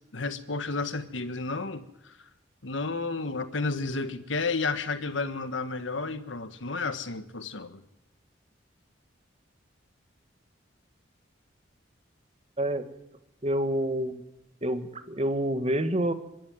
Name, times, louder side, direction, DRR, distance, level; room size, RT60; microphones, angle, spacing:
voice 1, 0.1-2.1 2.6-7.8, left 3 dB, 90° left, 11 dB, 1.5 m, -32 dB
voice 2, 13.4-14.2 14.6-16.1, right 1 dB, 35° right, 10 dB, 1.6 m, -27 dB
24.0 x 12.5 x 9.3 m, 0.82 s
head